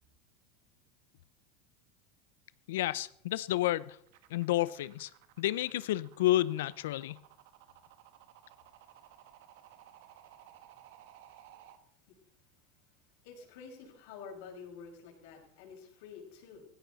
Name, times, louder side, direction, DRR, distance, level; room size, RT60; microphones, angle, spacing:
voice 1, 2.7-4.0 4.3-5.1 5.4-7.2, left 15 dB, 85° left, 0.7 m, -30 dB
sound 1, 4.1-11.8, right 12 dB, 70° right, 1.7 m, -57 dB
voice 2, 13.2-16.6, left 6 dB, 70° left, 6.2 m, -49 dB
18.5 x 16.0 x 4.2 m
supercardioid pair, 155°, 0 cm